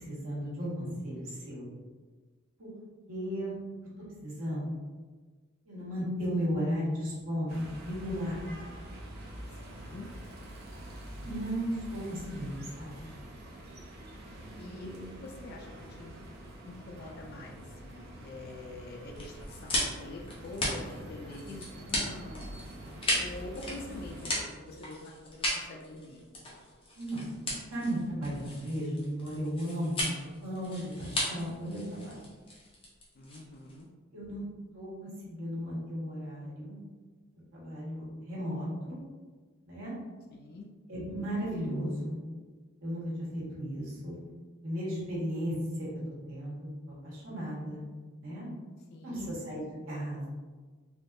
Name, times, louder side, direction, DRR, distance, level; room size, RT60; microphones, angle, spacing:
voice 1, 0.0-1.7 2.6-2.7 3.1-3.6 4.2-4.6 5.6-8.4 11.2-13.0 14.6-15.0 27.0-27.3 27.7-32.1 34.1-34.4 34.7-36.8 37.5-39.0 39.7-39.9 40.9-42.2 42.8-43.0 43.3-44.2 44.6-45.9 46.3-46.7 47.0-47.8 48.2-48.5 49.0-50.3, equal, 75° right, -7 dB, 1.3 m, -35 dB
sound 1, 7.5-24.4, right 1 dB, 50° right, 0.5 m, -46 dB
voice 2, 9.6-10.1 14.6-14.9 15.2-15.7 16.0-16.2 16.7-22.6 23.2-26.2 33.1-33.9 40.3-40.7 48.9-49.3, left 2 dB, 50° left, 0 dB, 0.3 m, -45 dB
sound 2, 19.1-33.8, left 1 dB, 25° left, 0.7 m, -36 dB
3.5 x 2.7 x 2.5 m, 1.4 s
head